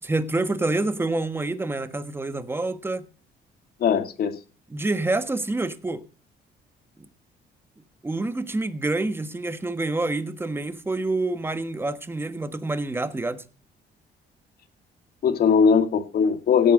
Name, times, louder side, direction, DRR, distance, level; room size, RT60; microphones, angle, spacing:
voice 1, 0.0-3.1 4.7-6.0 8.0-13.4, right 2 dB, 10° right, 1.4 m, -27 dB
voice 2, 3.8-4.4 15.2-16.7, left 6 dB, 60° left, 2.2 m, -20 dB
17.0 x 8.5 x 5.3 m
cardioid pair, 110°, 18 cm